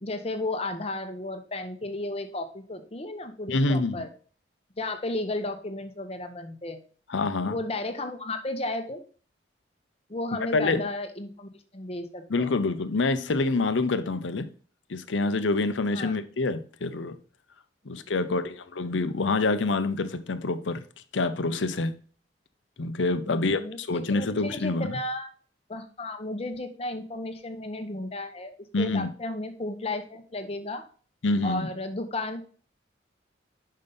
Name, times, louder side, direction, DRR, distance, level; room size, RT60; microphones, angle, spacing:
voice 1, 0.0-4.1 4.8-6.8 7.4-9.0 10.1-12.5 15.9-16.2 17.8-17.9 18.2-18.4 23.3-25.3 25.7-30.8 31.4-32.4, left 2 dB, 30° left, 0.9 m, -34 dB
voice 2, 3.5-4.1 7.1-7.6 10.5-10.9 12.3-14.5 14.9-17.2 17.9-20.8 21.1-22.0 22.8-25.0 28.7-29.1 31.2-31.7, left 3 dB, 85° left, 0.7 m, -26 dB
5.5 x 5.3 x 5.4 m
head